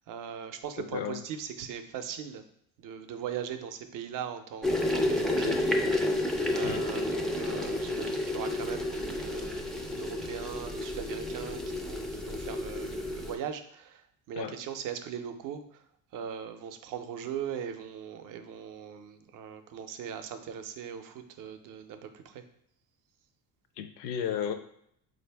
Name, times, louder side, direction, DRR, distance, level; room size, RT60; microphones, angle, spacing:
voice 1, 0.1-2.4 2.8-6.1 6.4-15.8 16.1-22.4, right 8 dB, 55° right, 8 dB, 0.5 m, -40 dB
sound 1, 4.6-13.4, left 1 dB, ahead, 0.3 m, -31 dB
voice 2, 23.8-24.5, left 8 dB, 70° left, 9 dB, 0.6 m, -33 dB
4.0 x 2.5 x 3.3 m, 0.71 s
cardioid pair, 110°, 38 cm